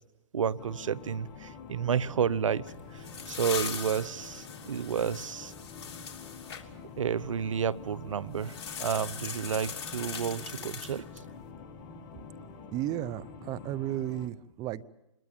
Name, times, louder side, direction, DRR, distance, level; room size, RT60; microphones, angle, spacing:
voice 1, 0.3-2.7 2.9-5.5 7.0-11.1, right 7 dB, 75° right, 22 dB, 0.9 m, -31 dB
sound 1, 0.6-14.3, left 4 dB, 25° left, 2.0 m, -47 dB
sound 2, 2.7-6.6 8.4-11.3, left 7 dB, 50° left, 3.1 m, -40 dB
voice 2, 12.7-14.8, right 13 dB, 20° right, 16 dB, 0.8 m, -34 dB
25.5 x 21.5 x 7.1 m, 0.89 s
hypercardioid pair, 140°, 16 cm